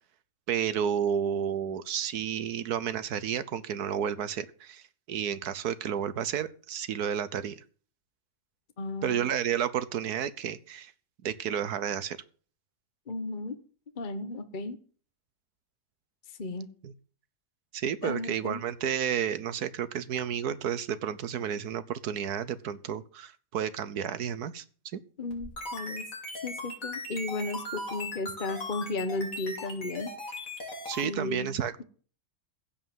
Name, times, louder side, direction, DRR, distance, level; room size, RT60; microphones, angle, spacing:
voice 1, 0.5-7.6 9.0-10.9 11.2-12.2 16.8-16.9 17.7-24.6 24.9-25.0 30.9-31.8, right 8 dB, 85° right, 15 dB, 1.5 m, -31 dB
voice 2, 8.8-9.2 13.1-13.6 14.0-14.8 16.4-16.7 18.0-18.6 25.2-26.1 26.4-30.1 31.0-31.5, left 3 dB, 35° left, 9 dB, 1.3 m, -34 dB
sound 1, 25.3-31.1, left 1 dB, 60° left, 4.1 m, -38 dB
15.5 x 5.7 x 9.4 m, 0.42 s
omnidirectional pair, 1.6 m